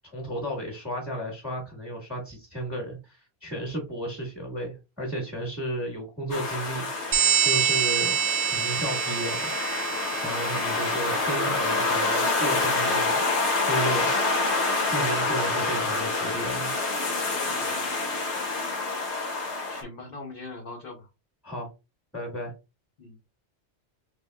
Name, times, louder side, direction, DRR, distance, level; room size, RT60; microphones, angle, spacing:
voice 1, 0.0-6.9 7.4-8.2 8.5-9.4 10.2-13.2 13.6-14.1 14.9-16.7 21.4-21.7 22.1-22.5, right 1 dB, ahead, -1 dB, 1.4 m, -33 dB
sound 1, 6.3-19.8, left 3 dB, 85° left, 1.3 m, -27 dB
sound 2, 7.1-11.4, right 8 dB, 80° right, 0.9 m, -26 dB
voice 2, 17.5-17.9 19.7-21.1 23.0-23.3, left 3 dB, 55° left, 0 dB, 1.0 m, -42 dB
4.1 x 3.5 x 2.2 m, 0.27 s
omnidirectional pair, 1.1 m